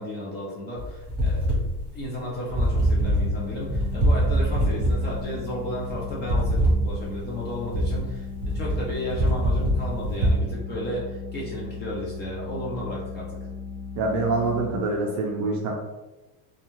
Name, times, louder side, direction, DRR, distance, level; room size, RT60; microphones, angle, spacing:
voice 1, 0.0-13.3, left 1 dB, 25° left, -5 dB, 0.4 m, -33 dB
sound 1, 0.8-10.4, right 1 dB, 5° right, 0.9 m, -24 dB
sound 2, 2.8-14.8, left 5 dB, 40° left, 0.8 m, -37 dB
voice 2, 14.0-15.7, right 3 dB, 40° right, 0 dB, 0.4 m, -25 dB
2.4 x 2.4 x 2.9 m, 1.1 s
cardioid pair, 150°, 47 cm